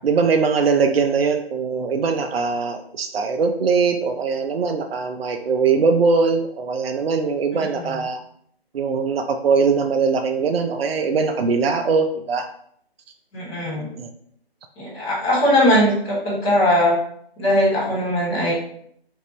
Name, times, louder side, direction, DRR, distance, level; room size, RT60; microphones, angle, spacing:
voice 1, 0.0-8.2 8.7-12.5 13.8-14.1, right 5 dB, 70° right, 6 dB, 0.5 m, -21 dB
voice 2, 7.5-8.1 13.3-13.9 14.8-17.0 17.4-18.5, left 1 dB, 10° left, -11 dB, 1.2 m, -20 dB
3.5 x 2.5 x 3.1 m, 0.66 s
figure-of-eight pair, 150°, 31 cm